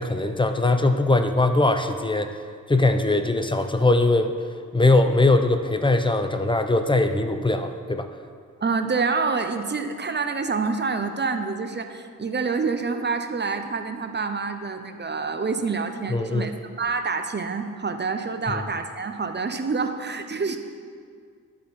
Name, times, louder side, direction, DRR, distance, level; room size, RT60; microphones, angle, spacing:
voice 1, 0.0-2.4 2.7-4.4 4.7-8.1 16.1-16.5 18.5-18.6, left 2 dB, 15° left, 7 dB, 0.6 m, -21 dB
voice 2, 8.6-16.5 16.8-20.6, right 4 dB, 30° right, 7 dB, 0.6 m, -27 dB
12.0 x 4.2 x 4.3 m, 2.1 s
cardioid pair, 60°, 35 cm